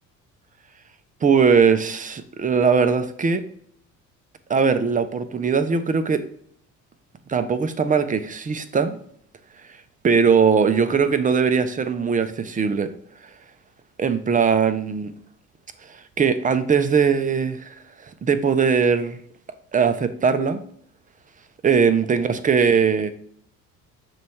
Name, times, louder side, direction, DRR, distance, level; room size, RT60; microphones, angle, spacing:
voice 1, 1.2-3.4 4.5-6.2 7.3-9.0 10.0-12.9 14.0-15.1 16.2-17.8 18.0-19.2 19.7-20.6 21.6-23.1, right 6 dB, 20° right, 10 dB, 0.6 m, -20 dB
6.9 x 3.1 x 4.4 m, 0.63 s
figure-of-eight pair, 55°, 45 cm